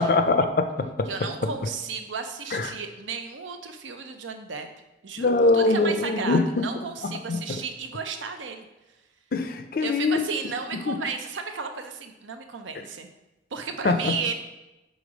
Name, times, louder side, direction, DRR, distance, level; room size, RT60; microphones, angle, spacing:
voice 1, 0.0-1.1 2.5-2.7 5.2-6.7 7.3-7.4 9.3-10.2 10.9-11.0 13.8-14.1, left 3 dB, 50° left, 8 dB, 0.5 m, -22 dB
voice 2, 1.1-4.7 5.0-8.7 9.8-13.1 13.5-14.3, right 5 dB, 85° right, 6 dB, 0.6 m, -34 dB
5.1 x 3.9 x 5.0 m, 1.0 s
head